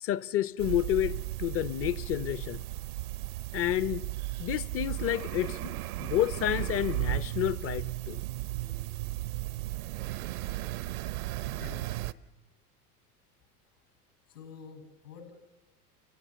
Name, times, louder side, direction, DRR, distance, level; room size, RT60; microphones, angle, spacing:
voice 1, 0.0-2.7 3.5-4.0 4.4-5.7 6.0-8.2, left 13 dB, 30° left, 0.6 m, -30 dB
sound 1, 0.6-12.1, right 18 dB, 65° right, 0.8 m, -35 dB
voice 2, 11.4-12.1 14.2-15.3, left 6 dB, 80° left, 6.6 m, -48 dB
29.5 x 16.0 x 7.1 m
figure-of-eight pair, 80°, 47 cm